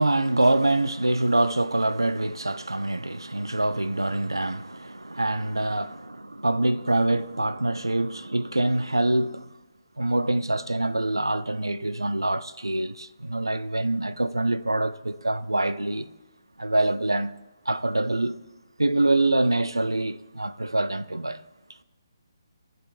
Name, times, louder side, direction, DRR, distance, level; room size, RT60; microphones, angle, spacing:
voice 1, 0.0-9.5 10.0-16.1 16.6-17.3 17.7-18.4 18.8-21.4, right 2 dB, 90° right, 0.3 m, -25 dB
13.5 x 5.0 x 2.4 m
figure-of-eight pair, 140°, 2 cm